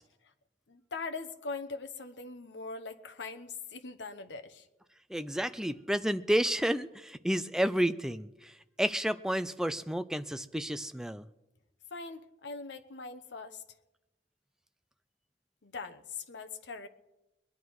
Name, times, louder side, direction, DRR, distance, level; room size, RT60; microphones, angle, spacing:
voice 1, 0.7-4.6 11.9-13.6 15.6-16.9, left 4 dB, 85° left, 7 dB, 1.0 m, -41 dB
voice 2, 5.1-8.5 8.8-11.2, equal, 5° right, 11 dB, 0.4 m, -31 dB
21.0 x 10.5 x 4.7 m, 0.96 s
head